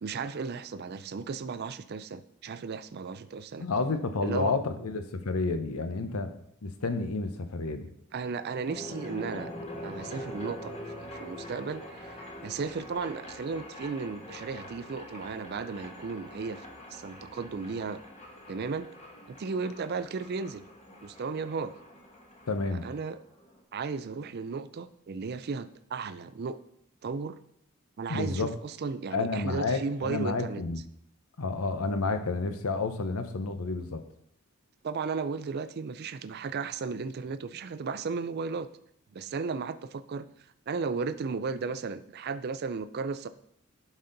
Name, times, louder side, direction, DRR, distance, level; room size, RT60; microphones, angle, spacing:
voice 1, 0.0-3.7 4.2-4.5 8.1-9.5 9.8-16.6 16.9-18.0 18.5-18.9 19.3-20.6 21.0-21.7 22.7-23.2 23.7-26.6 27.0-27.4 28.0-30.6 34.8-38.7 39.1-40.3 40.7-43.3, right 4 dB, 50° right, 13 dB, 0.4 m, -35 dB
voice 2, 3.6-7.9 22.5-22.9 28.1-28.5 29.1-30.8 31.4-34.0, left 3 dB, 85° left, 8 dB, 0.8 m, -30 dB
sound 1, 8.6-23.6, left 1 dB, 30° left, 1.2 m, -44 dB
11.0 x 4.2 x 3.9 m, 0.72 s
head